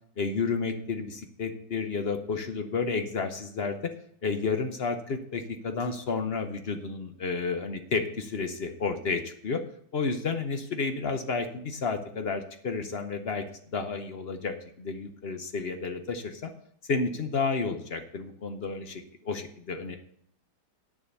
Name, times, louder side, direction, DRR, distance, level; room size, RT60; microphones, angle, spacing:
voice 1, 0.2-3.8 4.2-9.6 9.9-13.5 13.7-16.5 16.9-20.0, left 4 dB, 50° left, 7 dB, 0.8 m, -31 dB
8.8 x 7.2 x 6.8 m, 0.67 s
omnidirectional pair, 1.8 m